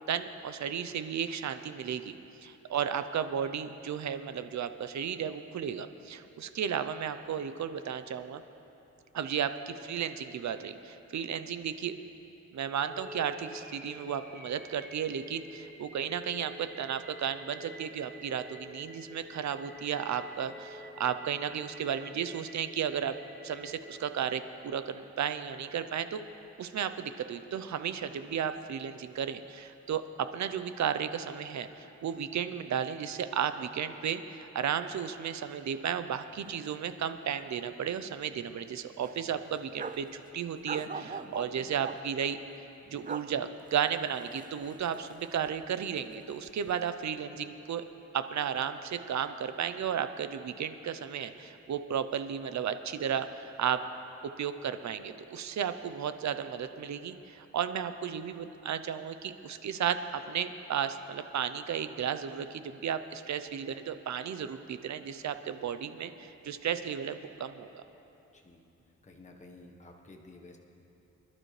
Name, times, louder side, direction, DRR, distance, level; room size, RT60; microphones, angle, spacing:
voice 1, 0.1-2.1 2.4-8.4 9.1-11.9 12.5-23.2 23.4-26.2 26.6-42.4 42.9-47.8 48.1-53.8 54.2-67.8, right 8 dB, 65° right, 10 dB, 0.7 m, -34 dB
sound 1, 12.9-24.9, left 1 dB, ahead, 2.5 m, -49 dB
sound 2, 36.4-36.5 36.8-36.9 37.4-38.0 38.4-38.5 39.0-40.1 40.7-42.0 42.9-43.3 43.7-45.7 46.0-46.7, right 5 dB, 30° right, 0.5 m, -42 dB
voice 2, 68.3-68.6 69.0-70.6, left 2 dB, 25° left, 1 dB, 1.3 m, -52 dB
25.0 x 11.5 x 3.3 m, 3.0 s
wide cardioid pair, 110°, 30 cm